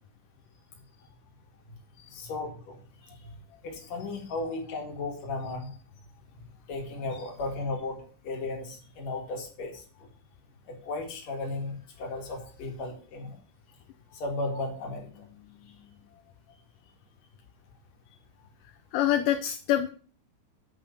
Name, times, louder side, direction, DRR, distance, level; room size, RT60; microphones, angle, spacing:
voice 1, 2.1-3.2 3.6-5.7 6.7-8.0 8.2-9.8 10.7-13.3 14.1-15.2, left 2 dB, 50° left, 2 dB, 2.9 m, -35 dB
voice 2, 15.2-16.0 18.6-19.9, left 11 dB, 80° left, 5 dB, 2.2 m, -29 dB
8.5 x 5.5 x 6.5 m, 0.41 s
omnidirectional pair, 4.2 m